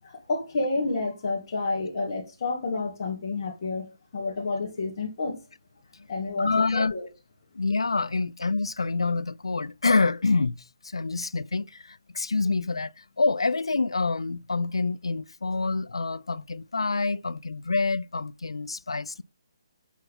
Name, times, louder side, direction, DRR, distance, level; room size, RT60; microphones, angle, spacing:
voice 1, 0.0-5.4 6.1-7.1, left 3 dB, 50° left, 2.4 m, -30 dB
voice 2, 6.4-6.9 7.5-19.2, left 3 dB, 85° left, 0.4 m, -27 dB
8.1 x 4.5 x 5.5 m
figure-of-eight pair, 145°, 3 cm